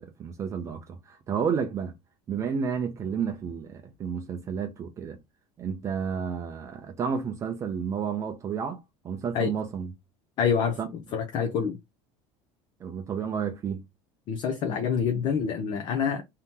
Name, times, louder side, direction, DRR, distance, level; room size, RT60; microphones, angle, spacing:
voice 1, 0.0-1.9 2.3-5.2 5.6-9.9 10.8-10.9 12.8-13.9, right 6 dB, 20° right, 0.5 m, -31 dB
voice 2, 10.4-10.8 11.1-11.8 14.3-16.2, left 7 dB, 35° left, 0.6 m, -26 dB
4.3 x 2.8 x 3.5 m
cardioid pair, 175°, 14 cm